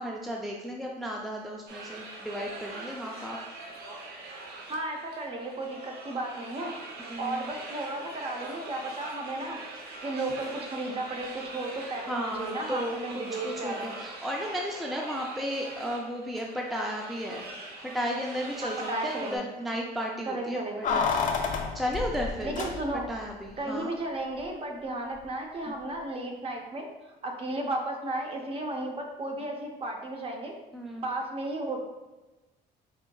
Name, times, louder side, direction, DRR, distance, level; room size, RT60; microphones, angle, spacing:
voice 1, 0.0-3.4 7.1-7.4 12.1-17.4 17.8-21.1 21.7-22.6 23.1-23.9 25.7-25.8 30.7-31.1, equal, ahead, -1 dB, 0.4 m, -34 dB
sound 1, 1.7-19.4, right 2 dB, 70° right, 0.7 m, -42 dB
voice 2, 4.7-6.7 7.2-9.6 10.0-13.9 18.6-19.4 20.3-20.9 22.4-23.1 23.6-26.9 27.2-30.6 31.0-31.8, right 2 dB, 35° right, 2 dB, 0.7 m, -34 dB
Keys jangling, 20.8-23.2 23.5-23.6, left 5 dB, 50° left, 0.6 m, -29 dB
4.4 x 3.4 x 2.3 m, 1.1 s
cardioid pair, 110°, 17 cm